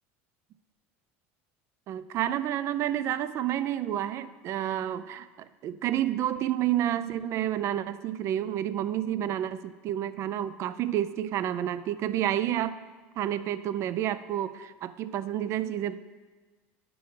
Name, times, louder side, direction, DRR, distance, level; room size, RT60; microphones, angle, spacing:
voice 1, 1.9-12.8 13.2-15.9, right 11 dB, 50° right, 14 dB, 0.4 m, -30 dB
9.8 x 5.4 x 5.7 m, 1.3 s
supercardioid pair, 115°, 6 cm